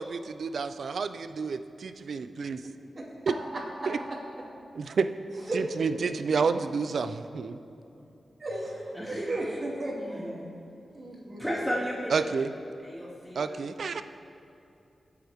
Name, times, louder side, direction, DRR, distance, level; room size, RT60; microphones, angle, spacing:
voice 1, 0.0-2.6 3.9-4.0 4.7-5.1 5.5-7.6 12.1-12.5 13.4-14.0, right 5 dB, 75° right, 11 dB, 0.5 m, -30 dB
voice 2, 2.6-3.1 3.5-3.9 5.5-5.6 8.4-10.4 10.9-11.4, right 2 dB, 45° right, -6 dB, 2.9 m, -35 dB
voice 3, 8.9-9.3 10.0-10.5 11.4-12.4 12.8-13.7, equal, 5° right, -6 dB, 2.6 m, -34 dB
23.5 x 8.2 x 3.6 m, 2.7 s
cardioid pair, 80°, 0 cm